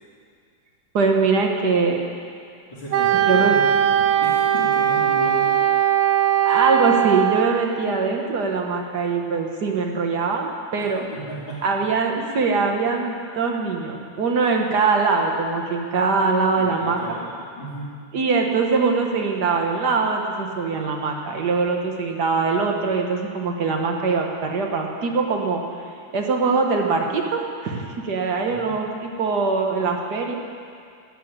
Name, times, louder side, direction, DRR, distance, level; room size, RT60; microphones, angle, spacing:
voice 1, 0.9-2.0 3.3-3.6 6.4-11.0 11.6-17.0 18.1-25.6 26.1-30.4, right 4 dB, 60° right, 2 dB, 1.8 m, -22 dB
voice 2, 2.7-5.6 10.8-11.6 16.5-17.9 28.5-28.7, equal, 75° left, -11 dB, 3.4 m, -35 dB
Wind instrument woodwind instrument, 2.9-7.7, right 10 dB, 75° right, 1.4 m, -19 dB
12.0 x 8.6 x 8.7 m, 2.3 s
omnidirectional pair, 2.1 m